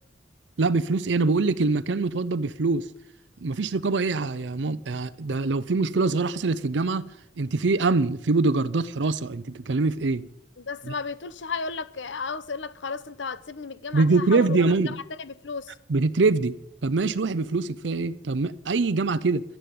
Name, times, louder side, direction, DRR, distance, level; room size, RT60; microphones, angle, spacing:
voice 1, 0.6-2.9 3.4-7.0 7.4-10.3 10.8-11.0 13.9-15.0 15.9-16.6 16.8-19.4, right 3 dB, 80° right, 0.6 m, -24 dB
voice 2, 10.6-14.7 15.2-15.7, left 4 dB, 85° left, 0.8 m, -34 dB
12.0 x 10.0 x 9.5 m
head